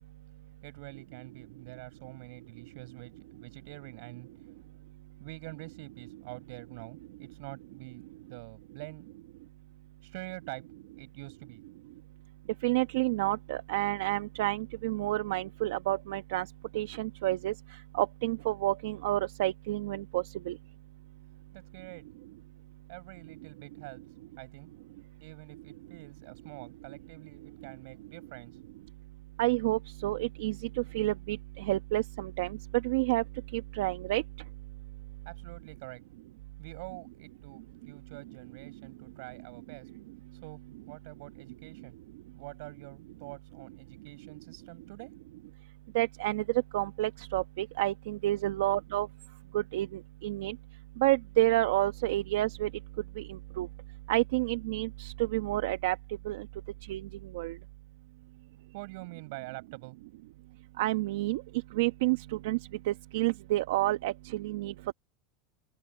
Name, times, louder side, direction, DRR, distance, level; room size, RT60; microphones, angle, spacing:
voice 1, 0.6-4.3 5.2-8.0 8.3-9.1 10.0-10.6 11.0-11.6 21.5-22.0 22.9-24.0 24.4-24.7 25.2-28.6 35.2-36.0 36.6-39.9 40.4-40.6 40.9-42.0 42.3-45.1 58.7-60.0, right 25 dB, 65° right, 6.1 m, -46 dB
voice 2, 12.6-16.5 16.7-17.5 17.9-20.5 29.4-33.2 33.5-34.2 45.9-46.4 46.7-49.1 49.5-50.6 51.0-52.7 53.2-53.7 54.1-55.9 56.2-56.5 56.9-57.0 57.3-57.6 60.8-61.4 61.7-62.6 62.9-64.7, right 16 dB, 80° right, 1.1 m, -29 dB
open air
supercardioid pair, 165°, 0 cm